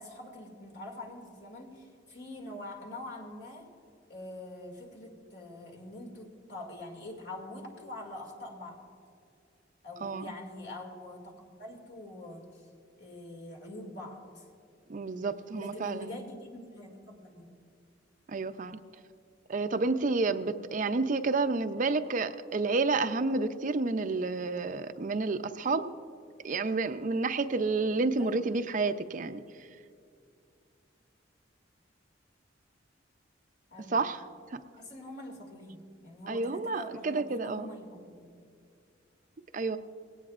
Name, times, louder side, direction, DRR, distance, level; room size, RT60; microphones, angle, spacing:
voice 1, 0.0-3.7 4.1-8.8 9.8-12.7 13.0-14.4 15.5-17.5 28.2-28.4 33.7-34.0 34.8-38.3, left 1 dB, 65° left, 0 dB, 2.3 m, -44 dB
voice 2, 10.0-10.3 14.9-16.2 18.3-18.8 19.5-25.9 26.4-29.4 33.9-34.2 34.5-34.6 36.3-37.7 39.5-39.8, right 3 dB, 45° right, 9 dB, 0.5 m, -30 dB
19.0 x 17.0 x 2.5 m, 2.3 s
head